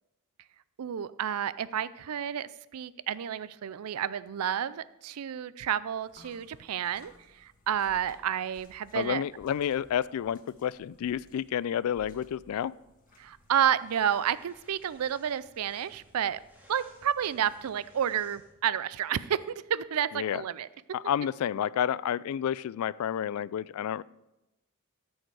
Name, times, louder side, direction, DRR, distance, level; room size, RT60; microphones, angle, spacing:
voice 1, 0.8-9.2 13.2-16.4 16.7-20.7, right 9 dB, 85° right, 17 dB, 0.4 m, -30 dB
sound 1, 6.0-17.7, left 2 dB, 40° left, 1.3 m, -60 dB
voice 2, 8.9-12.7 20.1-20.4 20.9-24.0, left 9 dB, 70° left, 18 dB, 0.3 m, -30 dB
sound 2, 13.1-18.7, right 1 dB, 10° right, 1.9 m, -60 dB
12.5 x 6.5 x 4.7 m, 0.95 s
head